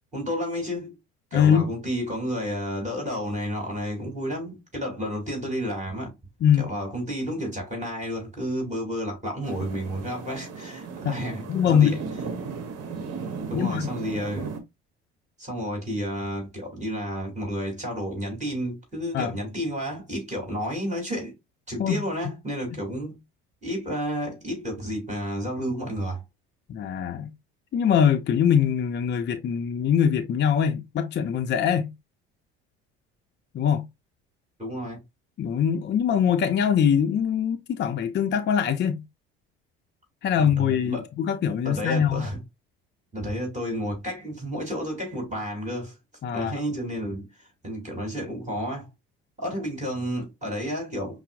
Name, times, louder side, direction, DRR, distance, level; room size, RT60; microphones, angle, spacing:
voice 1, 0.1-0.9 1.3-6.1 6.6-12.0 13.5-14.5 15.4-21.3 21.7-23.2 23.6-26.2 34.6-35.0 40.4-41.1 41.6-42.4 43.1-45.9 46.3-48.9 49.4-51.2, equal, 25° right, 2.6 m, -31 dB
voice 2, 1.3-1.7 6.4-6.7 11.0-11.2 11.5-12.0 13.5-13.9 19.1-19.3 21.8-22.0 26.7-27.3 27.7-31.9 33.5-33.8 35.4-39.0 40.2-42.2 46.2-46.5, left 8 dB, 35° left, 0.5 m, -23 dB
sound 1, 9.4-14.6, right 5 dB, 55° right, 1.0 m, -36 dB
5.6 x 2.0 x 2.5 m
hypercardioid pair, 65°, 30 cm